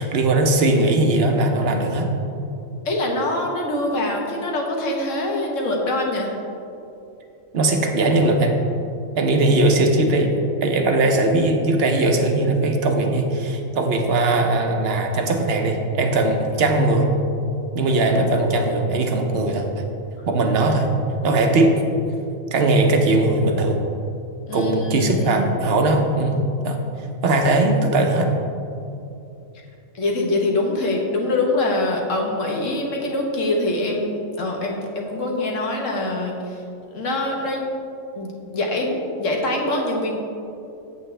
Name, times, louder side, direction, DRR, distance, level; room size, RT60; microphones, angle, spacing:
voice 1, 0.0-2.1 7.5-8.6 9.2-10.3 10.6-17.1 17.7-19.8 20.3-20.9 21.2-21.8 22.5-23.8 24.5-26.8 27.2-28.3, right 2 dB, 55° right, 3 dB, 1.0 m, -19 dB
voice 2, 2.8-6.3 24.5-25.5 29.9-36.6 36.9-37.6 38.2-40.2, left 2 dB, 85° left, 0 dB, 1.5 m, -24 dB
8.3 x 8.1 x 3.3 m, 2.7 s
omnidirectional pair, 1.3 m